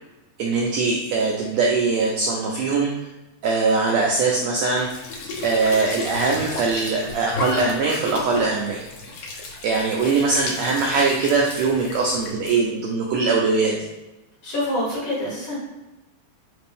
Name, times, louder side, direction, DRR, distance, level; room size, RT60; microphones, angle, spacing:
voice 1, 0.4-2.9 3.4-4.9 5.4-8.8 9.6-13.8, right 4 dB, 90° right, -1 dB, 1.5 m, -21 dB
Squeak / Sink (filling or washing) / Trickle dribble, 4.7-12.6, left 2 dB, 75° left, 1.9 m, -33 dB
voice 2, 14.4-15.6, left 1 dB, 55° left, -6 dB, 1.5 m, -26 dB
5.0 x 2.5 x 3.4 m, 1.1 s
omnidirectional pair, 3.6 m